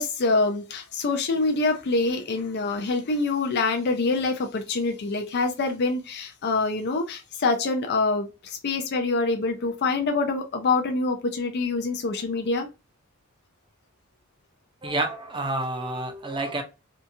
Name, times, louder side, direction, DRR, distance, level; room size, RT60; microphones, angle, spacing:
voice 1, 0.0-12.7, left 3 dB, 50° left, 0.4 m, -25 dB
voice 2, 14.8-16.6, right 2 dB, 25° right, 0.6 m, -29 dB
2.7 x 2.3 x 2.6 m
head